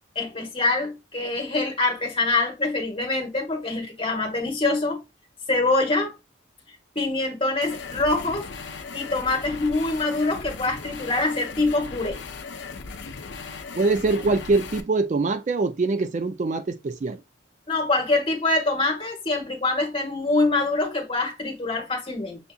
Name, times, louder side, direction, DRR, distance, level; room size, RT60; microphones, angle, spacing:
voice 1, 0.1-5.0 5.5-6.1 6.9-8.5 8.9-12.2 17.7-22.4, left 2 dB, 25° left, 1.2 m, -24 dB
sound 1, 7.6-14.8, left 4 dB, 65° left, 0.5 m, -37 dB
voice 2, 13.7-17.2, right 3 dB, 40° right, 0.3 m, -23 dB
6.8 x 2.6 x 2.3 m
head